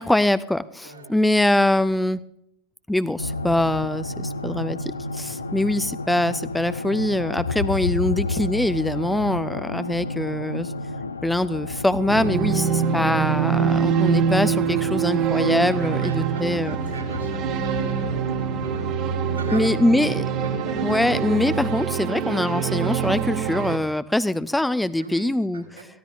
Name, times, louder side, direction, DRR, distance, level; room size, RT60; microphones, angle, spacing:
voice 1, 0.0-2.2 2.9-10.7 11.2-16.8 19.5-20.2 20.8-25.9, left 1 dB, 5° left, 15 dB, 0.5 m, -23 dB
sound 1, 3.2-21.8, left 3 dB, 75° left, 0.7 m, -32 dB
sound 2, 12.1-23.8, right 8 dB, 40° right, 1.2 m, -24 dB
voice 2, 15.8-18.9 19.2-21.0 25.0-25.3 25.5-25.9, right 3 dB, 80° right, -1 dB, 3.9 m, -40 dB
22.5 x 15.0 x 2.6 m, 0.76 s
figure-of-eight pair, 90°, 0 cm